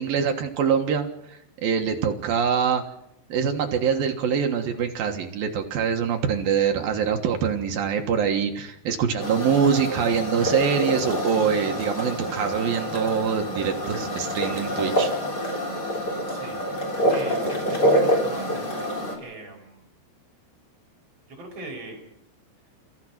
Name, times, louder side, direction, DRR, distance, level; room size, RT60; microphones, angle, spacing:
voice 1, 0.0-2.8 3.3-15.1, right 7 dB, 65° right, 4 dB, 2.6 m, -24 dB
sound 1, 9.2-19.1, equal, 25° left, 3.1 m, -26 dB
voice 2, 16.3-16.8 17.1-19.9 21.3-22.0, right 2 dB, 30° right, 0 dB, 6.0 m, -40 dB
29.5 x 15.5 x 6.0 m, 0.81 s
omnidirectional pair, 5.7 m